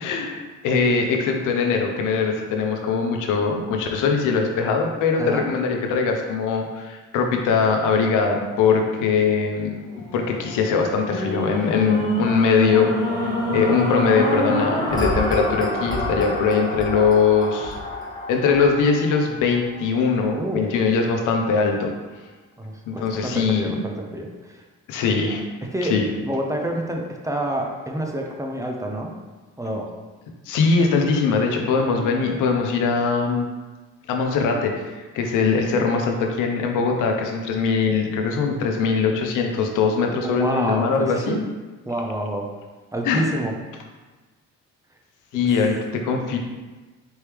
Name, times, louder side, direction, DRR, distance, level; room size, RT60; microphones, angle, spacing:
voice 1, 0.0-9.7 10.1-17.7 18.3-21.9 22.9-23.8 24.9-25.4 25.8-26.1 30.5-33.5 34.1-41.4 43.0-43.3 45.3-46.4, left 5 dB, 90° left, 3 dB, 0.6 m, -21 dB
sound 1, 9.8-20.1 20.7-20.8, left 1 dB, 15° left, 1.0 m, -27 dB
voice 2, 20.4-20.7 22.6-24.6 25.7-26.0 26.2-29.1 29.6-29.9 40.2-41.4 41.9-42.5 42.9-43.5, right 1 dB, 10° right, 1 dB, 0.6 m, -28 dB
4.5 x 3.1 x 3.4 m, 1.3 s
cardioid pair, 90°, 30 cm